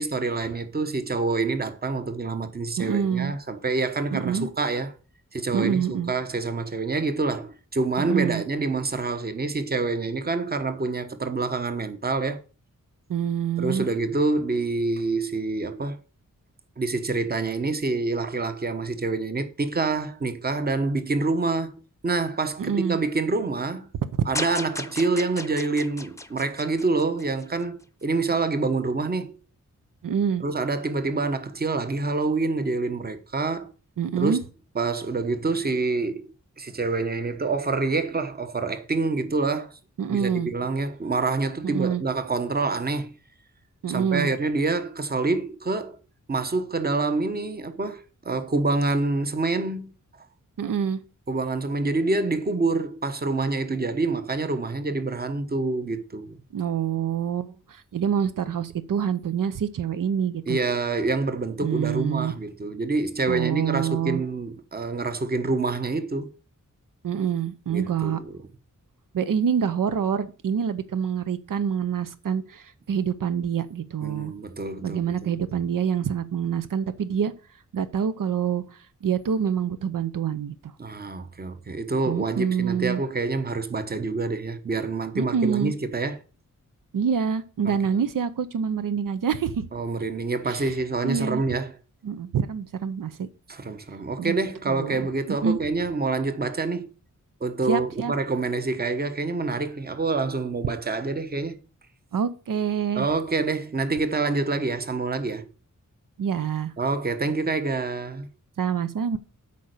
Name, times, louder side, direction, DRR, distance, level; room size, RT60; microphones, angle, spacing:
voice 1, 0.0-4.9 5.3-12.4 13.6-16.0 16.8-21.7 22.0-23.9 24.2-29.4 30.4-33.7 34.2-34.4 34.7-36.3 36.6-39.7 40.1-43.1 43.9-46.0 46.3-49.9 51.3-56.4 60.5-66.3 67.7-68.4 74.0-75.3 80.8-86.2 87.6-87.7 89.7-91.7 93.5-96.9 97.4-101.6 102.9-105.5 106.8-108.3, right 3 dB, 30° right, 1.0 m, -27 dB
voice 2, 2.8-3.3 4.1-4.5 5.5-6.1 8.0-8.4 13.1-13.9 22.6-23.0 30.0-30.4 34.0-34.4 40.0-40.5 41.6-42.0 43.8-44.3 50.6-51.0 56.5-60.6 61.6-62.3 63.3-64.2 67.0-68.2 69.1-74.3 74.8-77.3 77.7-78.6 79.0-80.7 82.1-83.0 85.1-85.7 86.9-89.7 90.5-90.7 91.0-91.4 92.0-93.3 94.2-94.3 94.7-95.0 95.4-95.6 97.7-98.1 102.1-103.1 106.2-106.7 108.6-109.2, right 7 dB, 80° right, 0.7 m, -26 dB
sound 1, 24.3-27.6, left 2 dB, 10° left, 0.7 m, -35 dB
8.5 x 5.3 x 6.5 m
wide cardioid pair, 130°, 32 cm